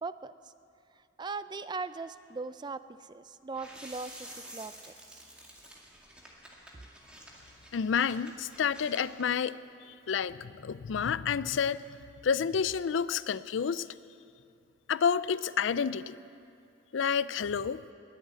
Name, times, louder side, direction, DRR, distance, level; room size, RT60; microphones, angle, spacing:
voice 1, 0.0-0.5 1.0-5.2 6.7-6.8, right 4 dB, 25° right, 14 dB, 0.4 m, -40 dB
sound 1, 3.5-9.4, right 1 dB, 5° right, 2.0 m, -50 dB
voice 2, 7.7-9.6 9.9-11.8 12.2-13.9 14.9-16.2 16.9-17.8, left 7 dB, 75° left, 16 dB, 0.4 m, -29 dB
20.0 x 8.2 x 8.8 m, 2.5 s
head